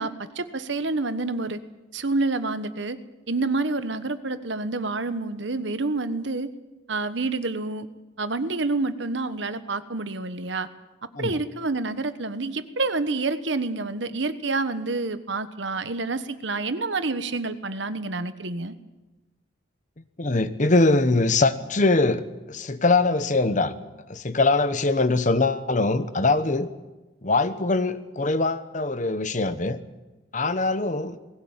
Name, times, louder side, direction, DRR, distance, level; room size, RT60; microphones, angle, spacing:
voice 1, 0.0-1.6 1.9-3.0 3.3-6.5 6.9-7.9 8.2-10.7 11.2-18.7, right 3 dB, 70° right, 12 dB, 1.2 m, -28 dB
voice 2, 20.2-23.7 24.1-26.7 27.2-29.8 30.3-31.2, left 3 dB, 40° left, 13 dB, 1.0 m, -22 dB
20.0 x 17.0 x 8.9 m, 1.1 s
head